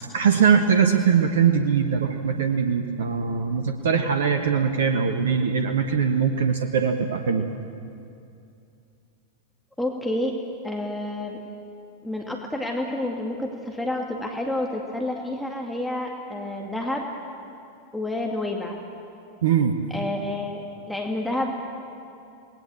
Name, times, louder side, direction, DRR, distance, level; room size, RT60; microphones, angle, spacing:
voice 1, 0.0-7.5 19.4-19.7, right 6 dB, 65° right, 6 dB, 1.2 m, -21 dB
voice 2, 9.8-10.3 10.6-11.4 12.0-17.1 17.9-18.8 19.9-21.5, left 1 dB, ahead, -1 dB, 2.3 m, -29 dB
28.5 x 19.5 x 7.5 m, 2.6 s
figure-of-eight pair, 90°, 0 cm